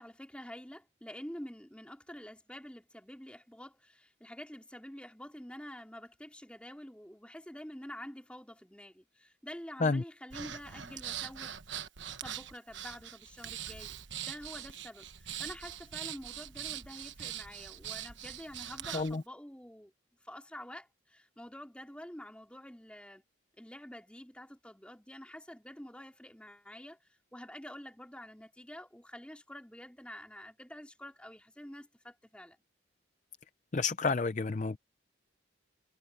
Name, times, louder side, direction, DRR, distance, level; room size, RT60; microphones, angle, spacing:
voice 1, 0.0-11.6 12.2-13.9 14.3-19.9 20.2-23.2 23.6-32.6, equal, 5° left, 3.3 m, -48 dB
Breathing, 10.3-19.2, right 10 dB, 75° right, 1.1 m, -42 dB
voice 2, 33.7-34.8, left 4 dB, 40° left, 0.5 m, -30 dB
head